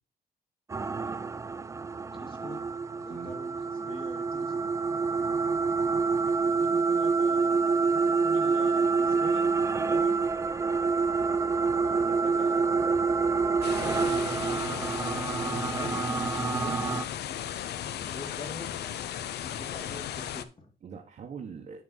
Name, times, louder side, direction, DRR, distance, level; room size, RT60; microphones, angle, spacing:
sound 1, 0.7-17.0, right 4 dB, 20° right, 0.3 m, -27 dB
voice 1, 2.1-2.6 2.9-4.7 6.4-9.5 9.8-10.2 11.6-13.1 13.7-16.8 17.9-18.8 19.4-20.7, left 3 dB, 30° left, 3 dB, 2.3 m, -45 dB
voice 2, 12.0-13.1 20.8-21.8, right 6 dB, 50° right, -1 dB, 1.6 m, -45 dB
sound 2, 13.6-20.4, left 10 dB, 85° left, 0.8 m, -36 dB
11.5 x 4.6 x 4.2 m, 0.32 s
cardioid pair, 140°, 17 cm